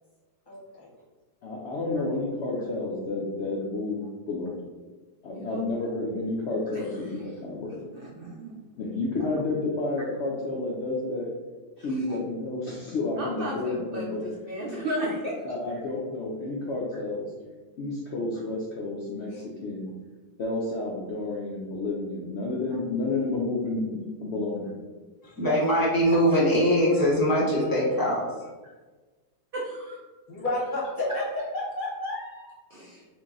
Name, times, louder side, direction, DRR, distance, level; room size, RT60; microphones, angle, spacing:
voice 1, 0.5-0.9 1.8-2.0 30.3-31.2 31.5-32.6, left 1 dB, 35° left, -6 dB, 1.0 m, -31 dB
voice 2, 1.4-4.6 5.2-7.8 8.8-11.3 11.8-14.3 15.4-17.3 17.8-19.9 20.4-24.7, left 2 dB, 75° left, -3 dB, 0.6 m, -30 dB
voice 3, 5.3-5.6 6.7-6.8 7.9-8.5 9.2-9.3 11.8-12.2 13.2-15.3 19.3-19.4 32.9-33.0, right 1 dB, 85° right, -4 dB, 0.5 m, -34 dB
voice 4, 25.2-28.5, equal, 15° left, -7 dB, 0.8 m, -22 dB
2.9 x 2.6 x 3.7 m, 1.3 s
omnidirectional pair, 1.7 m